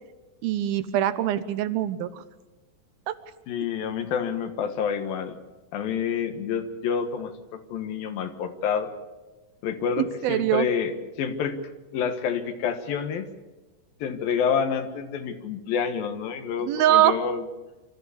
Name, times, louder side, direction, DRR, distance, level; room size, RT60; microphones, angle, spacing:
voice 1, 0.4-2.2 10.0-10.7 16.7-17.2, right 12 dB, 80° right, 13 dB, 2.6 m, -23 dB
voice 2, 3.5-5.4 5.7-8.9 9.6-11.6 11.9-13.3 14.0-17.5, left 7 dB, 70° left, 8 dB, 3.0 m, -28 dB
25.5 x 14.0 x 8.4 m, 1.1 s
omnidirectional pair, 4.4 m